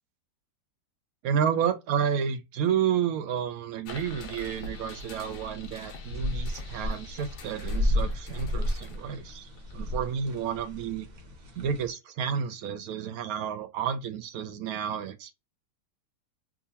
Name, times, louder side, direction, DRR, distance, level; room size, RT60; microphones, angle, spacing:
voice 1, 1.2-11.1 11.6-15.3, right 8 dB, 70° right, 0.9 m, -30 dB
sound 1, 3.8-10.4, left 3 dB, 70° left, 1.3 m, -44 dB
sound 2, 6.0-11.9, left 1 dB, 55° right, 1.4 m, -32 dB
3.6 x 2.7 x 2.7 m
omnidirectional pair, 1.9 m